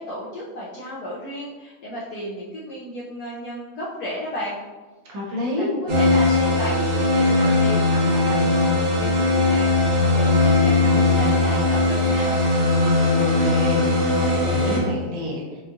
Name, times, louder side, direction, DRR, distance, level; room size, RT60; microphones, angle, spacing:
voice 1, 0.0-4.6 5.3-12.4, equal, 70° left, -7 dB, 0.9 m, -33 dB
voice 2, 5.1-5.7 13.1-13.8 14.2-15.6, left 1 dB, 70° right, -3 dB, 1.5 m, -28 dB
sound 1, 5.9-14.8, left 2 dB, 50° right, 0.8 m, -19 dB
5.4 x 2.3 x 2.6 m, 1.3 s
omnidirectional pair, 2.2 m